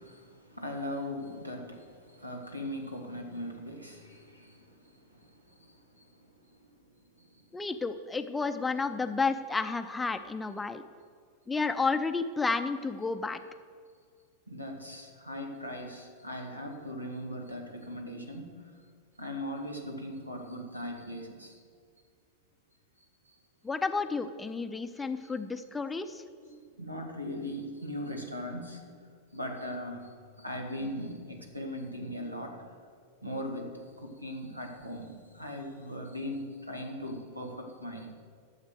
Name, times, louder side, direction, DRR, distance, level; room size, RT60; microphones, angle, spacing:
voice 1, 0.0-4.6 14.5-18.5 19.2-21.6 25.0-25.3 26.4-28.9 29.3-30.1 30.4-32.6 33.2-38.1, left 1 dB, 85° right, 2 dB, 1.7 m, -39 dB
voice 2, 7.5-10.8 11.5-13.4 23.6-26.2, left 4 dB, 10° left, 9 dB, 0.6 m, -31 dB
12.5 x 7.4 x 6.5 m, 2.1 s
figure-of-eight pair, 90°, 0 cm